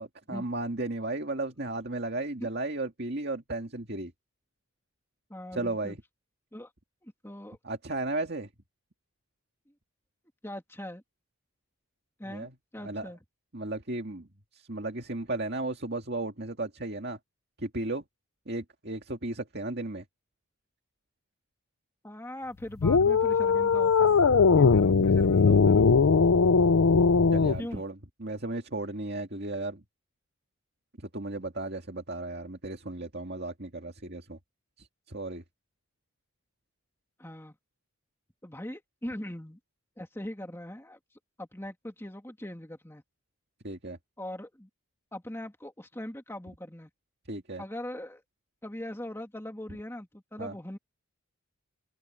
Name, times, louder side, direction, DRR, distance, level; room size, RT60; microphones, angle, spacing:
voice 1, 0.0-4.1 5.5-6.0 7.6-8.5 12.3-12.5 12.8-13.1 13.5-14.3 14.5-17.2 17.6-18.0 18.5-20.0 27.3-29.8 31.0-34.4 34.8-35.4 43.6-44.0 47.3-47.6 50.4-50.5, right 2 dB, 45° right, 2.2 m, -35 dB
voice 2, 5.3-6.0 6.5-6.7 7.0-7.6 10.4-11.0 12.2-13.2 22.0-24.2 24.6-25.9 27.6-27.8 37.2-37.6 38.4-39.6 40.0-41.0 41.4-43.0 44.2-44.7 45.1-46.9 47.6-48.2 48.6-50.8, left 1 dB, 10° left, 2.2 m, -41 dB
sound 1, 22.8-27.6, left 5 dB, 70° left, 0.5 m, -20 dB
open air
head